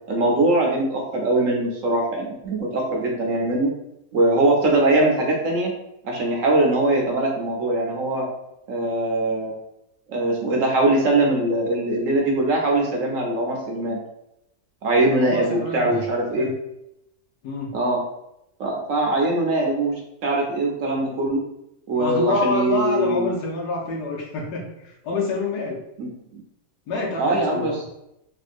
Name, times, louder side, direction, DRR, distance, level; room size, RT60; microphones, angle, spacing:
voice 1, 0.1-3.7 4.1-5.7 6.0-8.2 8.7-9.5 10.1-14.0 14.8-16.5 17.7-18.0 18.6-21.4 21.9-23.3 26.0-26.1 27.2-27.9, right 2 dB, 65° right, -1 dB, 1.0 m, -21 dB
voice 2, 15.2-16.0 16.4-16.5 17.4-17.7 22.0-25.8 26.9-27.8, left 3 dB, 85° left, -2 dB, 1.4 m, -27 dB
3.6 x 2.6 x 2.5 m, 0.82 s
omnidirectional pair, 1.7 m